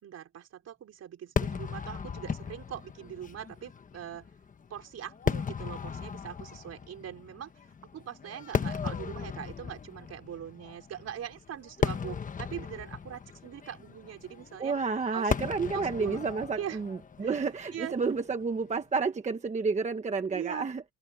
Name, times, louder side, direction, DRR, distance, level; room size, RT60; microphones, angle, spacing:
voice 1, 0.0-4.3 4.7-7.5 7.9-14.8 15.1-15.3 15.7-16.2 16.6-16.8 17.2-17.4 17.7-17.9 20.3-20.6, right 10 dB, 55° right, 4.5 m, -41 dB
Fireworks, 1.4-18.7, left 6 dB, 25° left, 1.1 m, -36 dB
voice 2, 14.6-20.8, right 4 dB, 25° right, 1.2 m, -30 dB
open air
cardioid pair, 150°, 31 cm